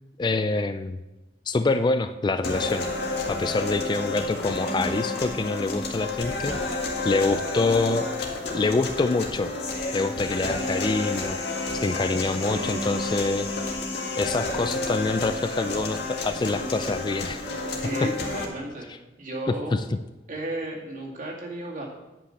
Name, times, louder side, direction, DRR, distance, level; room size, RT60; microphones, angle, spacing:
voice 1, 0.2-1.0 1.5-2.9 3.3-6.8 7.0-8.1 8.5-9.5 9.9-11.4 11.8-13.5 14.2-17.4 18.9-19.0 19.7-19.8, left 3 dB, 25° left, 10 dB, 0.3 m, -26 dB
sound 1, 2.4-18.4, left 2 dB, 65° left, 1.8 m, -30 dB
voice 2, 17.8-18.9 19.2-19.8 20.3-21.9, right 1 dB, 45° right, -2 dB, 2.2 m, -33 dB
9.9 x 5.8 x 6.4 m, 1.0 s
head